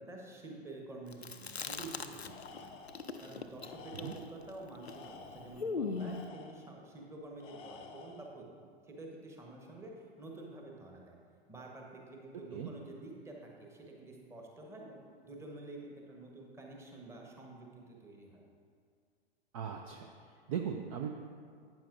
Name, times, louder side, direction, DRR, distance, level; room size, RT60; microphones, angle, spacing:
voice 1, 0.0-2.8 3.2-9.9 10.2-11.2 11.5-18.4, right 2 dB, 10° right, 0 dB, 1.1 m, -49 dB
Chewing mastication, 1.1-2.6 2.9-6.3, left 4 dB, 85° left, 0.5 m, -40 dB
Tools, 2.2-3.1 3.6-4.4 4.8-6.7 7.4-8.3, left 4 dB, 20° left, 0.5 m, -52 dB
voice 2, 19.5-21.1, right 8 dB, 35° right, 4 dB, 0.5 m, -39 dB
11.5 x 9.1 x 2.5 m, 2.2 s
figure-of-eight pair, 105°, 31 cm